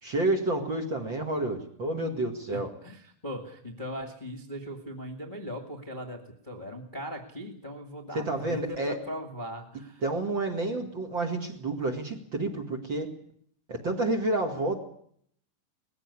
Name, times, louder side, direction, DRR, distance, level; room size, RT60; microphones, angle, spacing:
voice 1, 0.0-2.7 8.1-9.0 10.0-13.1 13.7-14.8, right 2 dB, 40° right, 2 dB, 2.4 m, -29 dB
voice 2, 2.5-6.2 6.4-10.0, equal, 20° left, 0 dB, 1.7 m, -39 dB
20.0 x 15.5 x 9.7 m, 0.66 s
omnidirectional pair, 4.0 m